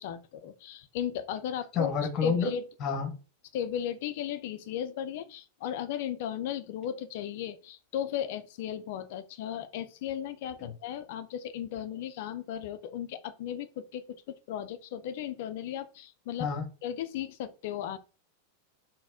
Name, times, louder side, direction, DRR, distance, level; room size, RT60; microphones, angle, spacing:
voice 1, 0.0-2.7 3.5-16.5 16.8-18.0, left 10 dB, 50° left, 0.4 m, -36 dB
voice 2, 1.8-2.5 2.8-3.1 16.4-16.6, left 5 dB, 35° left, 0.8 m, -28 dB
4.0 x 2.1 x 3.6 m
figure-of-eight pair, 90°, 0 cm